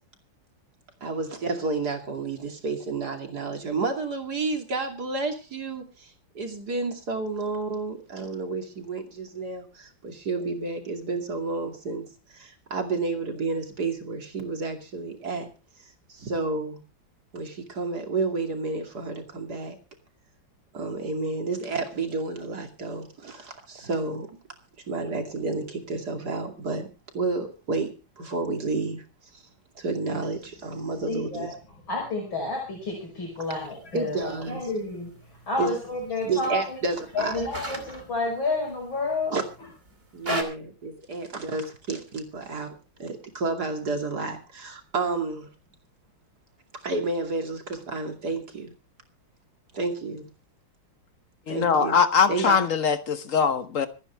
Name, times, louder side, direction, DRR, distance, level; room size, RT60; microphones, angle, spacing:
voice 1, 1.0-12.1 12.3-15.5 16.1-16.8 17.3-19.8 20.7-24.4 24.9-26.9 27.1-29.0 29.3-29.4 29.8-31.6 33.9-34.7 35.6-35.7 36.2-37.4 39.3-39.4 40.1-45.5 46.8-48.7 49.7-50.3 51.5-52.0 52.3-52.6, right 3 dB, 50° right, 3.1 m, -30 dB
voice 2, 31.1-31.5 31.9-35.1 35.5-36.8 37.1-39.3, left 2 dB, 70° left, 6.2 m, -30 dB
sound 1, 33.4-40.4, equal, 30° right, 2.8 m, -39 dB
voice 3, 51.5-53.9, left 6 dB, 45° left, 1.2 m, -22 dB
26.0 x 9.9 x 3.4 m
omnidirectional pair, 2.2 m